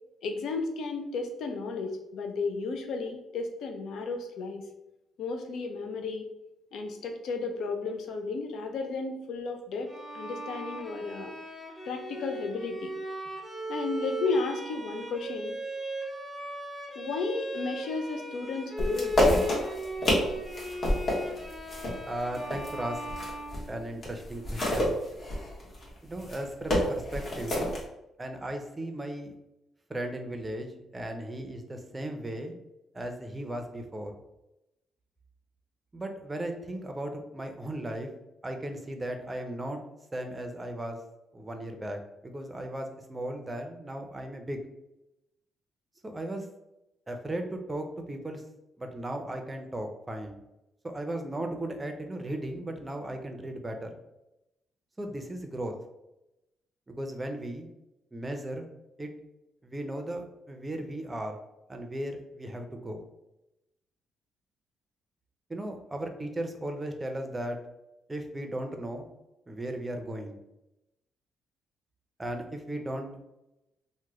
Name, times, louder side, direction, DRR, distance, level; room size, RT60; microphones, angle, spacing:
voice 1, 0.2-4.6 5.2-6.3 6.7-11.3 11.8-13.0 13.7-15.6 16.9-19.1, left 4 dB, 75° left, 4 dB, 0.5 m, -33 dB
Bowed string instrument, 9.9-24.2, equal, 15° left, 0.7 m, -38 dB
sound 1, 18.8-23.7 24.0-27.8, left 1 dB, 50° left, 1.2 m, -29 dB
voice 2, 22.1-23.1 23.7-24.9 26.0-27.7 28.2-29.3 29.9-32.6 32.9-34.1 35.9-38.1 38.4-39.8 40.1-41.0 41.3-44.6 46.0-46.5 47.1-48.4 48.8-50.4 50.8-54.0 55.0-55.7 56.9-57.7 58.1-58.7 59.0-59.1 59.6-61.4 61.7-63.0 65.5-67.6 68.1-69.1 69.5-70.4 72.2-73.1, right 1 dB, 20° right, 4 dB, 0.5 m, -36 dB
3.0 x 2.1 x 3.5 m, 0.92 s
cardioid pair, 90°, 0 cm